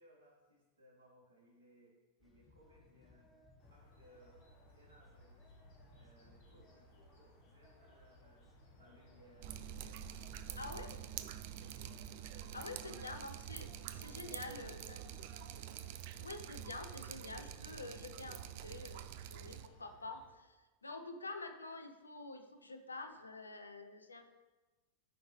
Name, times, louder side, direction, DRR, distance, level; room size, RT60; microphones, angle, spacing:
voice 1, 0.0-3.3 3.7-4.4 4.7-5.5 5.9-8.5 8.7-11.2 11.5-13.4 14.2-15.2, right 1 dB, 70° right, -3 dB, 3.0 m, -66 dB
sound 1, 2.2-18.4, left 3 dB, 10° left, 1.8 m, -65 dB
sound 2, 3.6-20.3, equal, 50° left, 3.1 m, -63 dB
Drip, 9.4-19.7, right 11 dB, 50° right, 0.4 m, -47 dB
voice 2, 10.6-11.0 12.5-15.0 16.2-20.6 20.8-24.3, left 3 dB, 80° left, 6 dB, 0.8 m, -48 dB
13.5 x 5.4 x 3.3 m, 1.2 s
figure-of-eight pair, 90°, 0 cm